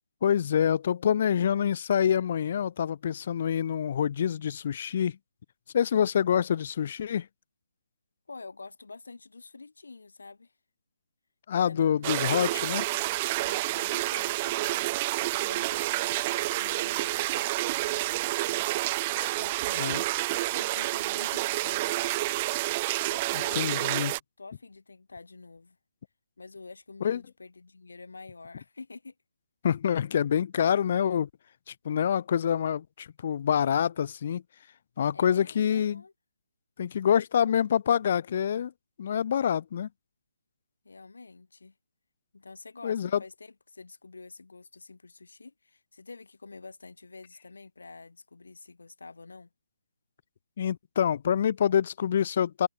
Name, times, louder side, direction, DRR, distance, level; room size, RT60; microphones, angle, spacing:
voice 1, 0.2-5.2 5.7-7.3 11.5-12.8 19.8-20.0 23.3-24.1 27.0-27.2 29.6-31.3 31.7-34.4 35.0-36.0 36.8-38.7 39.0-39.9 42.8-43.2 50.6-52.7, left 8 dB, 45° left, 0.5 m, -26 dB
voice 2, 8.3-10.5 11.5-18.2 19.1-22.3 23.1-25.8 26.4-29.1 35.1-36.1 40.8-41.7 42.3-49.5, left 3 dB, 85° left, 6.1 m, -48 dB
sound 1, 12.0-24.2, right 19 dB, 25° right, 0.6 m, -29 dB
hypercardioid pair, 160°, 0 cm